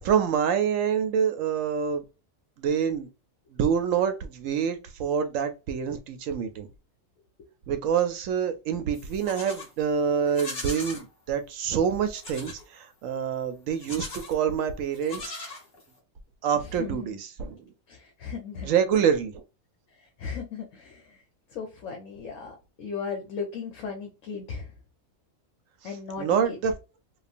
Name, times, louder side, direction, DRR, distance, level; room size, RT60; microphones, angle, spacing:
voice 1, 0.0-2.0 2.6-3.1 3.5-6.7 7.7-15.6 16.4-17.6 18.6-19.4 26.2-26.7, right 7 dB, 70° right, 1.0 m, -26 dB
Livestock farm animals working animals, 8.9-9.7 10.3-11.0 12.1-12.6 13.7-14.4 14.9-16.0, left 3 dB, 45° left, 1.5 m, -39 dB
voice 2, 16.8-17.2 17.9-18.7 20.2-21.2 21.5-24.7 25.8-26.6, left 5 dB, 70° left, 1.1 m, -36 dB
3.0 x 2.3 x 2.4 m
omnidirectional pair, 1.5 m